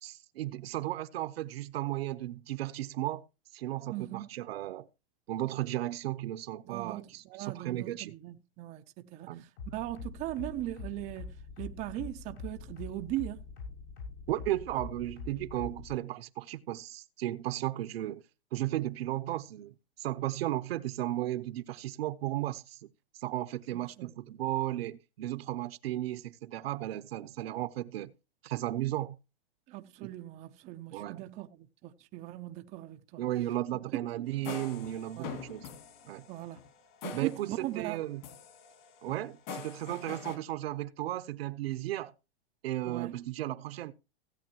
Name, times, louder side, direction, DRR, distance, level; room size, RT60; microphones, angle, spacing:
voice 1, 0.0-3.2 3.5-4.9 5.3-8.1 9.3-9.4 14.3-18.2 18.5-22.9 23.2-28.1 28.4-29.1 30.0-30.1 30.9-31.2 33.2-35.7 36.0-36.2 37.1-38.2 39.0-42.1 42.6-43.9, right 14 dB, 70° right, 0.9 m, -35 dB
voice 2, 3.9-4.3 6.7-9.5 9.7-13.4 24.0-24.1 29.7-33.2 35.2-35.3 36.3-36.6 37.0-38.0 42.9-43.1, right 16 dB, 20° right, 0.5 m, -39 dB
sound 1, 9.6-15.9, left 4 dB, 70° left, 7.5 m, -43 dB
sound 2, 34.3-38.0 38.2-40.4, left 6 dB, 45° left, 2.4 m, -44 dB
16.5 x 8.5 x 2.9 m
supercardioid pair, 150°, 31 cm